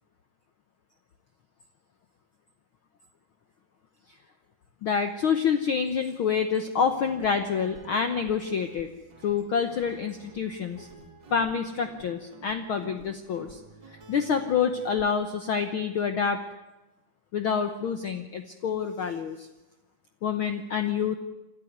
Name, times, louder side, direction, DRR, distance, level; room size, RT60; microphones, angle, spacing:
voice 1, 4.8-8.9 9.2-10.9 11.3-13.6 14.1-16.4 17.3-19.5 20.2-21.2, left 6 dB, 75° left, 8 dB, 1.1 m, -27 dB
Guitar, 6.8-15.1, right 3 dB, 35° right, 2.9 m, -49 dB
27.0 x 13.0 x 9.5 m, 1.0 s
omnidirectional pair, 3.7 m